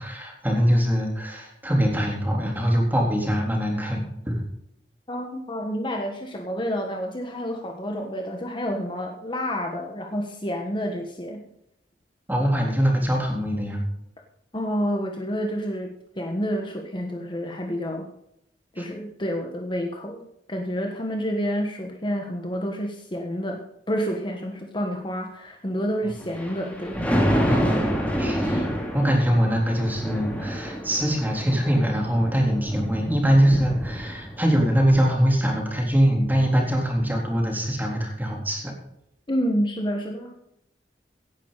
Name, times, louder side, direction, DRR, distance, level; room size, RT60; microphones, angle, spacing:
voice 1, 0.0-4.4 12.3-13.8 18.8-18.9 26.0-26.1 27.5-27.6 28.2-28.7 28.9-38.7, equal, 10° right, 0 dB, 3.6 m, -23 dB
voice 2, 5.1-11.4 14.5-18.1 18.7-23.6 23.9-27.0 39.3-40.3, equal, 30° left, 2 dB, 1.5 m, -29 dB
Thunder, 26.2-34.5 34.9-35.0, equal, 10° left, 3.0 m, -28 dB
17.0 x 10.5 x 4.1 m, 0.80 s
head